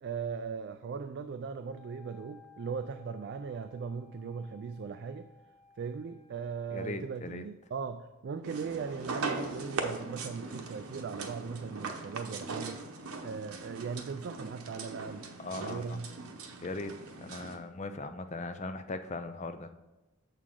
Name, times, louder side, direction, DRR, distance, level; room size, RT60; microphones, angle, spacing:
voice 1, 0.0-5.3 5.8-12.8 13.2-16.1, right 5 dB, 55° right, 9 dB, 0.3 m, -39 dB
Wind instrument woodwind instrument, 1.5-6.8, left 5 dB, ahead, 2.4 m, -60 dB
voice 2, 6.7-7.4 15.4-16.0 16.6-19.7, left 3 dB, 30° left, 8 dB, 0.4 m, -39 dB
sound 1, 8.4-17.6, right 4 dB, 90° right, 0.9 m, -40 dB
7.2 x 6.5 x 3.7 m, 1.1 s
head